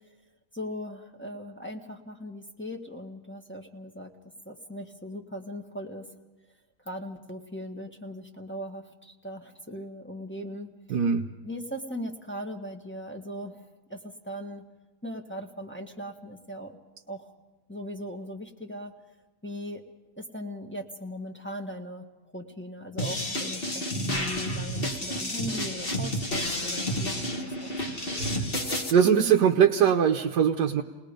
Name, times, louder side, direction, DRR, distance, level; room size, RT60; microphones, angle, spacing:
voice 1, 0.5-4.1 4.4-6.1 6.8-11.0 11.4-13.6 13.9-14.6 15.0-16.8 17.1-17.3 17.7-18.9 19.4-19.8 20.2-22.1 22.3-27.8, equal, 5° left, 0 dB, 1.2 m, -39 dB
voice 2, 10.9-11.2 27.2-27.4 28.0-28.4 28.9-30.8, right 8 dB, 65° right, 3 dB, 1.4 m, -22 dB
sound 1, 23.0-28.9, left 1 dB, 30° left, 1.6 m, -30 dB
29.5 x 19.5 x 5.2 m, 1.2 s
omnidirectional pair, 2.0 m